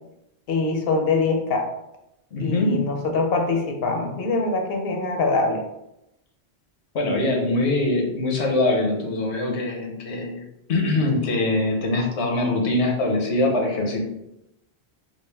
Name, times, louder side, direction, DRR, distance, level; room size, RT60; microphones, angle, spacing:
voice 1, 0.5-1.7 2.4-5.6, left 3 dB, 65° left, 3 dB, 0.7 m, -23 dB
voice 2, 2.3-2.7 6.9-10.4 10.7-14.0, left 2 dB, 90° left, 0 dB, 1.1 m, -23 dB
3.2 x 2.4 x 3.3 m, 0.86 s
omnidirectional pair, 1.1 m